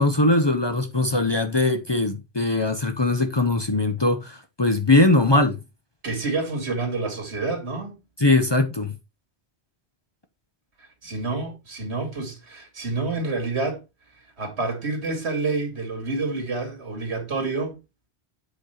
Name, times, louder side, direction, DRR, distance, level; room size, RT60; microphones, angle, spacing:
voice 1, 0.0-5.6 8.2-8.9, left 2 dB, 25° left, 0.8 m, -21 dB
voice 2, 6.0-7.9 10.8-13.8 14.4-17.8, right 3 dB, 80° right, 2.4 m, -28 dB
8.2 x 4.4 x 4.3 m
omnidirectional pair, 1.1 m